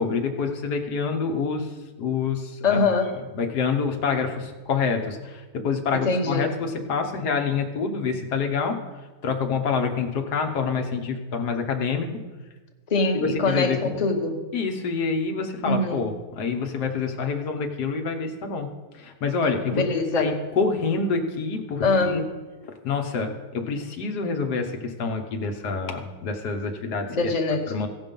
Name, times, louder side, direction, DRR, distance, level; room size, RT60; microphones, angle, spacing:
voice 1, 0.0-1.7 2.0-2.9 3.3-8.8 9.2-12.1 13.1-14.0 14.5-18.7 18.9-19.8 20.2-22.3 22.8-27.2 27.7-27.9, left 5 dB, 90° left, 4 dB, 1.7 m, -27 dB
voice 2, 2.6-3.1 5.9-6.5 12.9-14.4 15.6-16.0 19.7-20.4 21.8-22.2 27.1-27.9, left 3 dB, 30° left, 3 dB, 1.0 m, -23 dB
16.0 x 5.8 x 5.3 m, 1.3 s
omnidirectional pair, 1.7 m